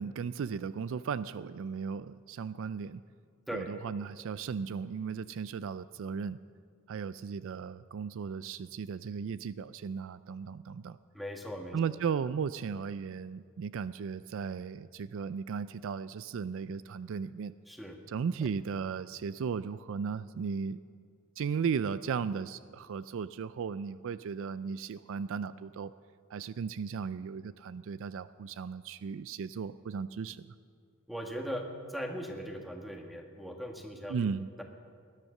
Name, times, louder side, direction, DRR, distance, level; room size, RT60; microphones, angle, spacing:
voice 1, 0.0-3.0 3.5-6.4 6.9-11.0 11.7-17.5 18.1-20.8 21.4-25.9 26.3-30.5 34.1-34.5, right 6 dB, 60° right, 15 dB, 0.3 m, -36 dB
voice 2, 11.1-12.0 17.7-18.0 31.1-34.3 34.6-34.7, equal, ahead, 2 dB, 1.5 m, -39 dB
19.5 x 11.0 x 6.5 m, 2.1 s
head